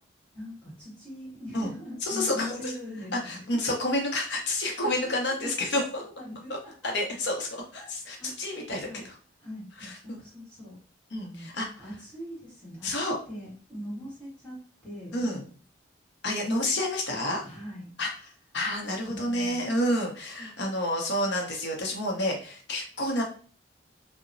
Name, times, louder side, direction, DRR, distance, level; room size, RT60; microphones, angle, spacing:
voice 1, 0.3-3.6 4.8-5.5 5.8-6.7 7.7-7.9 8.2-8.3 8.6-9.0 9.4-10.8 11.2-11.5 11.8-12.9 13.3-15.5 17.4-17.9 19.1-19.6, left 1 dB, 10° left, -8 dB, 1.3 m, -41 dB
voice 2, 2.0-2.7 3.1-6.0 6.8-9.1 9.8-10.2 11.1-11.7 12.8-13.2 15.1-15.4 16.2-17.4 18.0-18.1 18.5-23.2, left 1 dB, 70° left, 1 dB, 0.7 m, -29 dB
2.8 x 2.1 x 2.5 m, 0.41 s
head